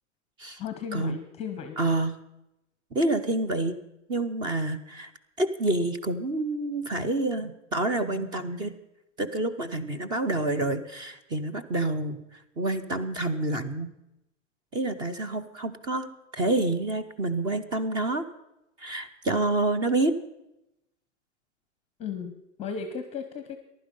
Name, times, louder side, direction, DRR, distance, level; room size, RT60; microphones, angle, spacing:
voice 1, 0.6-1.8 22.0-22.3 22.6-23.6, left 7 dB, 15° left, 8 dB, 0.7 m, -35 dB
voice 2, 1.8-2.1 2.9-3.8 4.1-5.1 5.4-8.7 9.2-12.2 12.6-13.9 14.7-18.2 18.8-20.1, right 2 dB, 10° right, 12 dB, 0.4 m, -28 dB
15.0 x 11.0 x 5.3 m, 0.90 s
hypercardioid pair, 145°, 38 cm